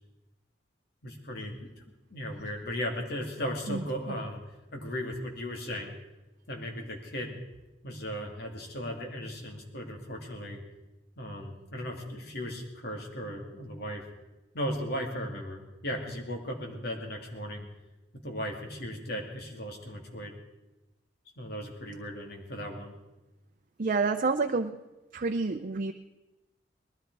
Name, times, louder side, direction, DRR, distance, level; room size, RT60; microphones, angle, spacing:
voice 1, 1.0-1.7 2.1-6.0 6.5-7.4 7.8-10.6 11.2-14.0 14.5-17.6 18.2-20.3 21.4-22.9, equal, 60° left, 2 dB, 2.6 m, -36 dB
voice 2, 3.7-4.1 23.8-24.8 25.1-25.9, right 4 dB, 50° right, 6 dB, 0.6 m, -29 dB
20.0 x 13.0 x 4.7 m, 1.0 s
head